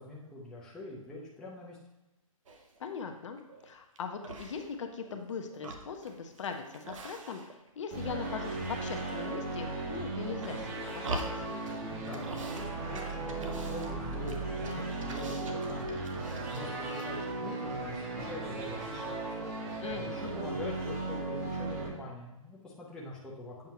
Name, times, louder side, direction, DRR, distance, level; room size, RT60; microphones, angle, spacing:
voice 1, 0.0-1.8 12.0-15.9 16.5-19.2 19.9-23.7, left 2 dB, 5° left, -5 dB, 0.6 m, -44 dB
sound 1, 2.5-2.9 3.4-4.0 4.2-5.2 5.5-7.7 8.0-8.7 9.0-9.8 10.3-11.8 12.0-12.7 12.9-16.7 16.9-17.1, right 2 dB, 65° right, 0.9 m, -44 dB
voice 2, 2.8-11.2 19.8-20.4, left 6 dB, 60° left, 5 dB, 0.8 m, -40 dB
sound 2, 7.9-21.9, right 2 dB, 25° right, 1.0 m, -36 dB
7.5 x 4.5 x 2.9 m, 1.0 s
hypercardioid pair, 155°, 18 cm